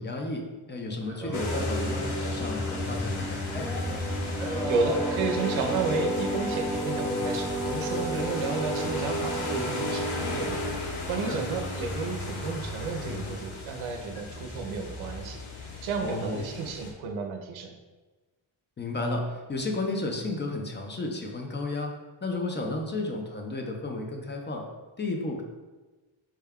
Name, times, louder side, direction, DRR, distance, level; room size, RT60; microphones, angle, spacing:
voice 1, 0.0-4.0 11.1-11.4 16.0-16.5 18.8-21.9 22.2-24.6 25.0-25.4, left 2 dB, 25° left, 2 dB, 0.3 m, -33 dB
Singing, 1.0-10.8, equal, 5° right, 0.8 m, -32 dB
sound 1, 1.3-16.9, left 2 dB, 70° left, 0.8 m, -35 dB
voice 2, 4.6-17.7, right 4 dB, 70° right, 3 dB, 0.6 m, -32 dB
4.6 x 2.2 x 3.5 m, 1.2 s
wide cardioid pair, 145°, 49 cm